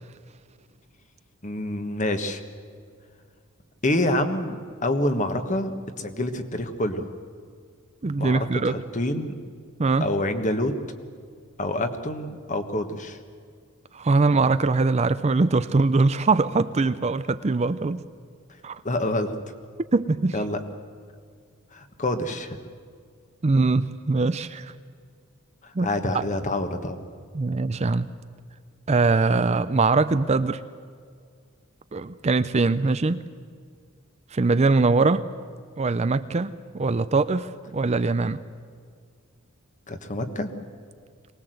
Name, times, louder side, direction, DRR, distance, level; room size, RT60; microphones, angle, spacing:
voice 1, 1.4-2.4 3.8-7.1 8.2-9.4 10.0-10.7 11.6-13.2 18.8-19.3 20.3-20.6 21.7-22.6 25.6-27.0 39.9-40.5, left 1 dB, 35° left, 8 dB, 1.4 m, -27 dB
voice 2, 8.0-8.7 9.8-10.1 13.9-18.0 18.6-18.8 19.9-20.4 23.4-24.7 25.7-26.2 27.3-28.1 28.9-30.6 31.9-33.2 34.3-35.2 35.8-38.4, right 3 dB, 30° right, 13 dB, 0.5 m, -22 dB
23.0 x 19.5 x 7.9 m, 2.1 s
head